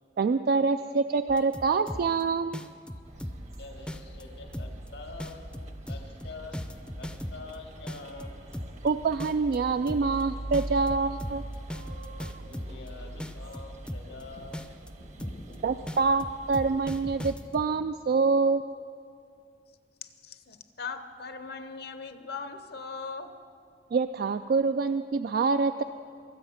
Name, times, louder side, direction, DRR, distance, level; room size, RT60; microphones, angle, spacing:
voice 1, 0.2-2.6 8.8-11.4 15.6-18.6 23.9-25.8, right 4 dB, 55° right, 10 dB, 0.3 m, -26 dB
sound 1, 1.3-2.2 2.5-3.5 3.9-4.2 4.5-4.9 5.2-7.5 7.9-8.9 9.2-9.6 9.9-10.2 10.5-12.9 13.2-14.2 14.5-14.9 15.2-15.5 15.9-17.7, equal, 5° left, 0.5 m, -37 dB
sound 2, 3.0-17.3, right 1 dB, 40° right, 0.9 m, -43 dB
voice 2, 3.4-5.5 5.8-8.5 12.4-14.7 15.0-16.0, left 3 dB, 90° left, 2 dB, 1.9 m, -46 dB
sound 3, 9.5-9.6 11.7-13.3, right 2 dB, 75° right, 1.0 m, -51 dB
voice 3, 20.0-23.3, left 5 dB, 60° left, 9 dB, 0.8 m, -39 dB
22.5 x 8.1 x 5.7 m, 2.4 s
head